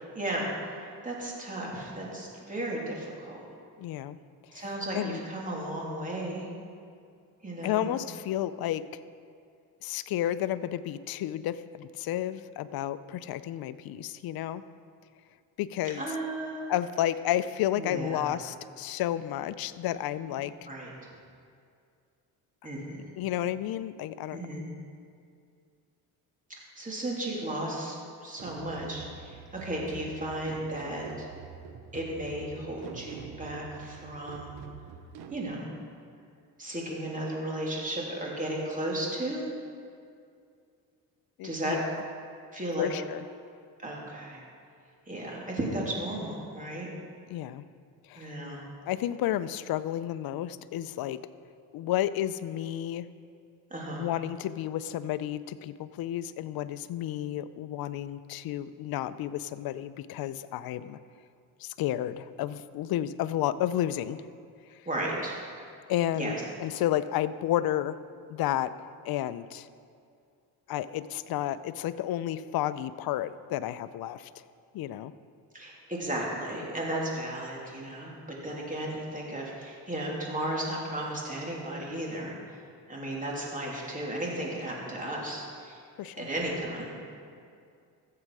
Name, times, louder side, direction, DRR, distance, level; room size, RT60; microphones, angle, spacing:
voice 1, 0.1-3.4 4.5-6.5 7.4-7.9 16.0-16.7 17.7-18.3 20.3-20.4 20.7-20.9 22.6-23.1 24.3-24.6 26.7-31.3 31.9-34.6 35.3-35.7 36.6-39.5 41.4-41.8 42.5-42.9 43.8-44.4 45.1-46.9 48.1-48.6 53.7-54.1 64.9-65.4 66.2-66.4 75.5-78.1 78.4-82.3 82.9-85.8 86.2-86.9, right 1 dB, 20° right, -3 dB, 3.0 m, -34 dB
voice 2, 3.8-4.2 4.5-4.7 4.9-5.2 7.6-8.8 9.8-14.6 15.6-16.0 16.7-20.5 23.2-24.4 41.4-41.8 42.8-43.2 47.3-47.7 48.1-48.4 48.9-51.2 51.7-53.1 54.0-61.0 61.6-64.2 65.9-68.0 68.3-68.7 69.0-69.7 70.7-74.3 74.7-75.1 86.0-86.3, left 12 dB, 70° left, 14 dB, 0.6 m, -31 dB
sound 1, 28.4-35.4, right 6 dB, 85° right, 1.0 m, -46 dB
14.0 x 7.8 x 4.8 m, 2.4 s
cardioid pair, 80°, 37 cm